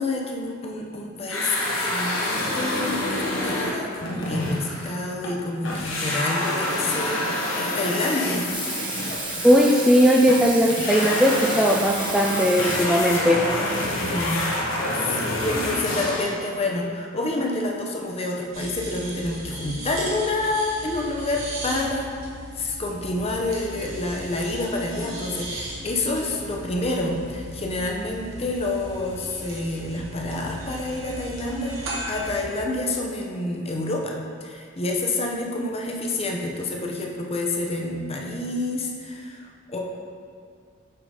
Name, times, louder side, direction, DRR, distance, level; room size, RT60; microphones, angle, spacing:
voice 1, 0.0-8.5 14.0-14.8 15.1-22.1 22.6-39.8, left 2 dB, 30° left, 0 dB, 0.8 m, -28 dB
sound 1, 1.3-5.4 5.6-16.4, left 1 dB, 65° left, 1.2 m, -27 dB
Water tap faucet / Sink (filling or washing), 8.5-13.2 14.7-14.8, right 2 dB, 25° right, 1.2 m, -32 dB
voice 2, 9.4-13.4, equal, 5° right, -2 dB, 0.3 m, -18 dB
sound 2, 18.5-32.4, right 1 dB, 75° right, 1.4 m, -37 dB
7.6 x 3.9 x 4.8 m, 2.2 s
head